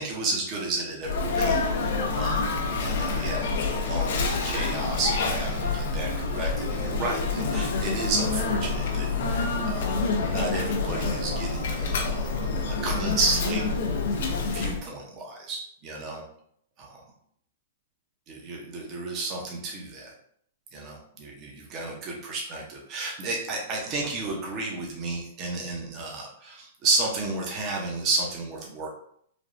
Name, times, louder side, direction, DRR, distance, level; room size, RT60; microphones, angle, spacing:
voice 1, 0.0-2.5 2.8-3.4 3.8-9.4 9.6-9.9 10.3-13.7 14.5-16.2 16.8-17.0 18.3-20.1 20.7-28.9, right 3 dB, 35° right, -1 dB, 0.7 m, -32 dB
Sneeze, 1.0-14.8, left 4 dB, 65° left, 0.5 m, -27 dB
3.3 x 2.2 x 2.5 m, 0.67 s
hypercardioid pair, 130°, 0 cm